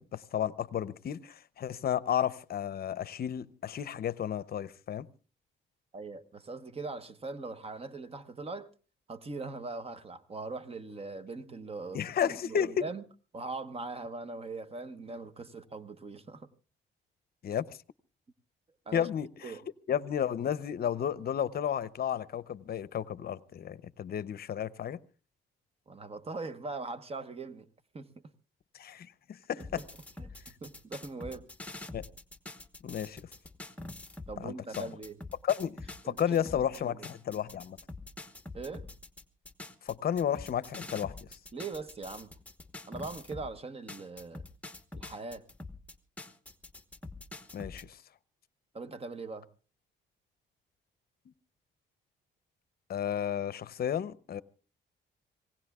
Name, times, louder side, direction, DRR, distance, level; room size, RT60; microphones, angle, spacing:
voice 1, 0.0-5.1 11.9-12.7 17.4-17.8 18.9-19.5 19.9-25.0 28.7-29.8 31.9-32.0 32.8-33.3 34.4-34.9 35.4-35.8 36.0-37.8 39.8-41.4 47.5-48.0 52.9-54.4, left 9 dB, 50° left, 0.7 m, -32 dB
voice 2, 5.9-8.7 9.1-13.0 13.3-16.5 18.9-19.1 19.4-19.7 25.9-27.7 27.9-28.1 29.6-29.9 30.2-31.5 34.3-35.2 36.0-37.1 38.5-38.9 41.5-42.3 42.9-44.4 44.9-45.4 48.7-49.5, right 3 dB, 30° right, 1.1 m, -41 dB
sound 1, 29.6-34.4 34.7-43.5 43.9-47.8, left 2 dB, 5° left, 1.1 m, -45 dB
26.0 x 18.0 x 2.4 m
cardioid pair, 90°, 20 cm